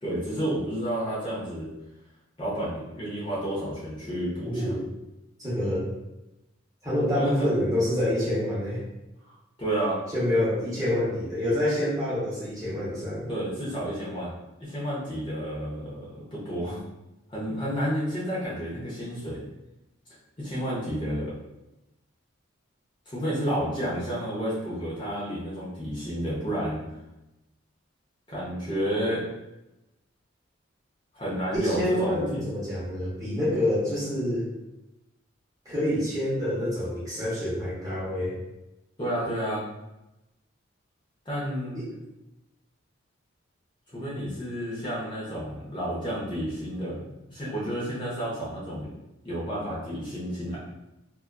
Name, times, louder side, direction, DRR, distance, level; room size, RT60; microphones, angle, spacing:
voice 1, 0.0-1.7 2.4-4.7 7.1-7.5 9.6-10.0 13.3-14.3 14.6-16.8 17.3-19.5 20.4-21.4 23.1-26.9 28.3-29.3 31.1-32.4 39.0-39.6 41.3-41.8 43.9-47.0 47.3-48.9 49.2-50.6, equal, 25° left, -8 dB, 0.6 m, -30 dB
voice 2, 4.4-4.8 5.4-5.8 6.8-8.8 10.1-13.3 31.5-34.5 35.7-38.3 41.8-41.9, left 1 dB, 20° right, -9 dB, 0.7 m, -27 dB
2.4 x 2.3 x 2.2 m, 0.96 s
head